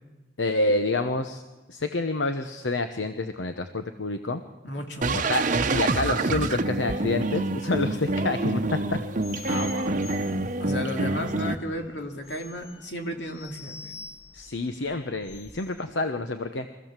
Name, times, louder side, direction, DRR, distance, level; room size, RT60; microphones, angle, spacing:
voice 1, 0.4-1.4 1.7-4.4 5.1-5.4 5.7-8.6 8.9-9.0 14.3-16.7, left 2 dB, 85° left, 8 dB, 1.0 m, -28 dB
voice 2, 4.6-5.1 9.5-10.0 10.6-13.9, left 1 dB, 70° left, 3 dB, 2.6 m, -34 dB
sound 1, 5.0-11.6, right 2 dB, 45° right, 0.9 m, -27 dB
sound 2, 9.2-15.8, left 5 dB, 30° left, 3.8 m, -46 dB
25.0 x 15.5 x 7.4 m, 1.2 s
head